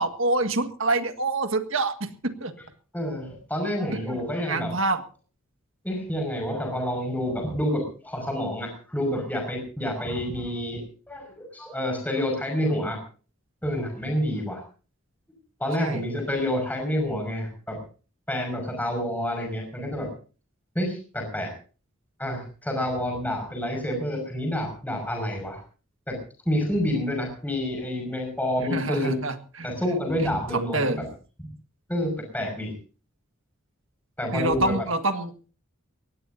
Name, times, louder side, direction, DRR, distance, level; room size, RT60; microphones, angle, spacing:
voice 1, 0.0-2.5 4.0-5.0 15.8-16.0 28.6-29.7 30.5-31.0 34.3-35.3, right 2 dB, 70° right, 7 dB, 1.8 m, -26 dB
voice 2, 2.9-4.7 5.8-13.0 13.6-14.6 15.6-17.8 18.3-20.1 20.7-21.5 22.2-25.6 26.1-26.2 26.5-29.2 29.6-31.0 31.4-31.5 31.9-32.7 34.2-34.7, left 1 dB, 10° left, 2 dB, 5.7 m, -28 dB
22.5 x 18.5 x 2.7 m, 0.37 s
head